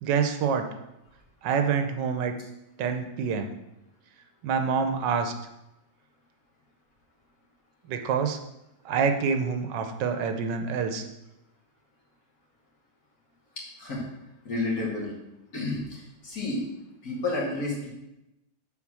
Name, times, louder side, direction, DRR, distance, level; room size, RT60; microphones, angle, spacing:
voice 1, 0.0-0.7 1.4-2.3 2.8-3.5 4.4-5.3 7.9-8.4 8.8-11.0, right 6 dB, 80° right, 7 dB, 1.4 m, -26 dB
voice 2, 14.4-15.1 15.5-16.6 17.0-17.9, left 2 dB, 55° left, -3 dB, 2.5 m, -30 dB
7.1 x 4.5 x 6.2 m, 0.90 s
omnidirectional pair, 1.9 m